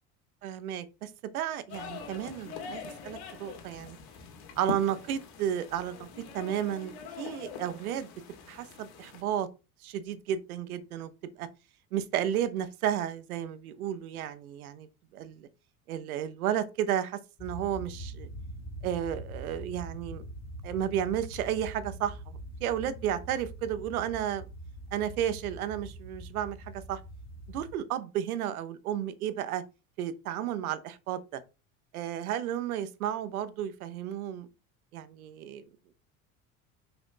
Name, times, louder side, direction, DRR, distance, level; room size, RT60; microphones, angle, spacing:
voice 1, 0.4-4.0 4.6-6.1 6.3-8.1 8.5-9.5 9.8-11.1 11.4-11.5 11.9-14.9 15.1-15.5 15.9-18.3 18.8-20.2 20.6-24.4 24.9-27.0 27.5-29.6 30.0-31.4 31.9-34.5 34.9-35.7, right 10 dB, 90° right, 1.0 m, -33 dB
sound 1, 1.7-9.2, left 5 dB, 60° left, 2.3 m, -43 dB
sound 2, 17.4-27.8, right 1 dB, 40° left, 2.1 m, -43 dB
5.9 x 5.9 x 4.0 m
hypercardioid pair, 85°, 42 cm